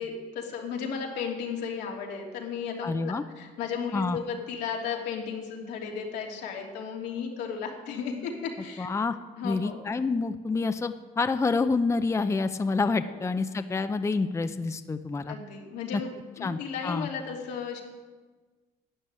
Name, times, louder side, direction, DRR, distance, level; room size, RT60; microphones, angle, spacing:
voice 1, 0.0-8.9 9.4-9.8 13.0-13.2 15.3-16.1 16.3-17.8, left 6 dB, 85° left, 0 dB, 3.1 m, -34 dB
voice 2, 2.8-3.2 3.9-4.2 8.8-9.2 9.4-15.4 15.9-16.0 16.4-17.1, left 4 dB, 15° left, 10 dB, 0.6 m, -28 dB
12.0 x 9.9 x 8.9 m, 1.3 s
cardioid pair, 110°, 17 cm